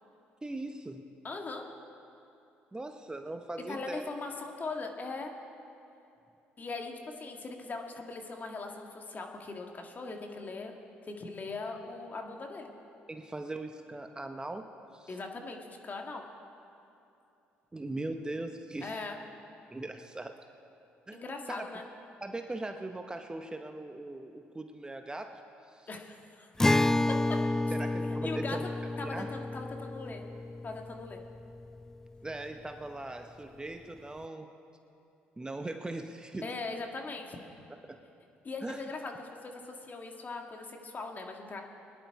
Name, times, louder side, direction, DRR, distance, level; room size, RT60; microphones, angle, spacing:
voice 1, 0.4-1.0 2.7-4.1 13.1-14.7 14.9-15.1 17.7-19.0 19.7-20.4 21.1-21.2 21.5-21.7 22.2-25.4 25.7-25.9 27.7-28.7 29.0-29.4 32.2-34.5 35.4-36.5 37.9-38.0 38.6-38.8, right 2 dB, 15° right, 6 dB, 0.8 m, -40 dB
voice 2, 1.2-1.7 3.7-5.3 6.6-10.7 11.0-12.7 15.1-16.2 18.8-19.2 21.1-21.9 25.9-26.5 27.1-27.4 28.2-28.7 29.0-30.2 30.6-31.2 36.4-37.4 38.4-41.6, left 3 dB, 40° left, 3 dB, 1.8 m, -40 dB
Acoustic guitar, 26.6-32.1, left 2 dB, 10° left, 0.3 m, -30 dB
20.0 x 10.5 x 4.7 m, 2.7 s
supercardioid pair, 65°, 5 cm